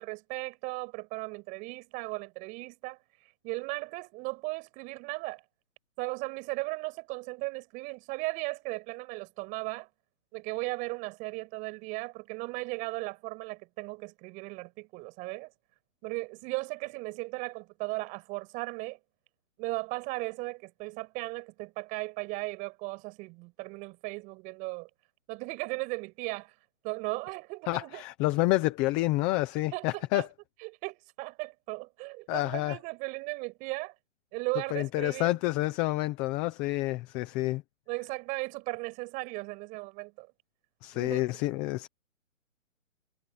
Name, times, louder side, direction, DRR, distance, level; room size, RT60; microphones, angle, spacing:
voice 1, 0.0-3.0 3.4-5.4 6.0-9.9 10.3-15.5 16.0-19.0 19.6-24.9 25.3-26.5 26.8-28.0 29.7-30.3 30.6-33.9 34.3-35.3 37.9-40.3 40.9-41.3, right 26 dB, 20° right, 7.1 m, -36 dB
voice 2, 27.7-30.3 32.3-32.8 34.7-37.6 40.8-41.9, left 19 dB, 10° left, 0.9 m, -28 dB
hypercardioid pair, 160°, 40 cm